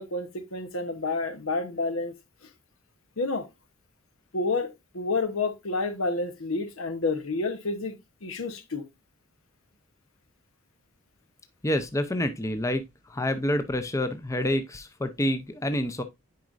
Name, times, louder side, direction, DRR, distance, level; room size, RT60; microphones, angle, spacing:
voice 1, 0.0-2.1 3.2-3.4 4.3-8.8, left 3 dB, 80° left, 1.1 m, -29 dB
voice 2, 11.6-12.8 13.1-16.0, left 1 dB, 15° left, 0.6 m, -27 dB
9.3 x 5.0 x 2.5 m
head